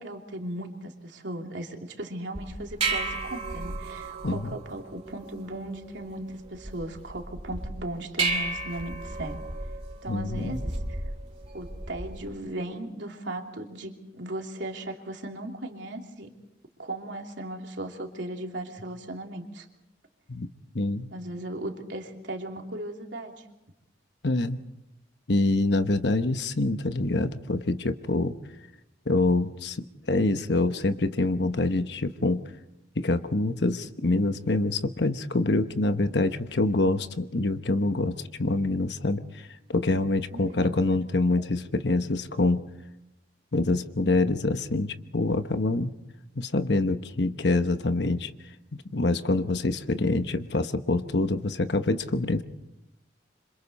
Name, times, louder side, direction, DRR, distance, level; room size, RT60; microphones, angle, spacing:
voice 1, 0.0-9.4 10.0-11.0 11.5-16.3 16.8-19.7 21.1-23.4 40.3-41.0 41.3-41.5, right 1 dB, 85° right, 2 dB, 3.0 m, -37 dB
sound 1, 2.3-12.3, right 3 dB, 35° right, 2.3 m, -34 dB
voice 2, 10.1-10.6 20.3-20.5 20.7-21.1 24.2-24.6 25.3-28.3 29.1-29.8 30.1-32.4 33.0-42.6 43.5-45.9 46.4-48.3 48.9-52.4, left 2 dB, 70° left, 9 dB, 1.0 m, -25 dB
28.0 x 26.5 x 4.2 m, 0.89 s
head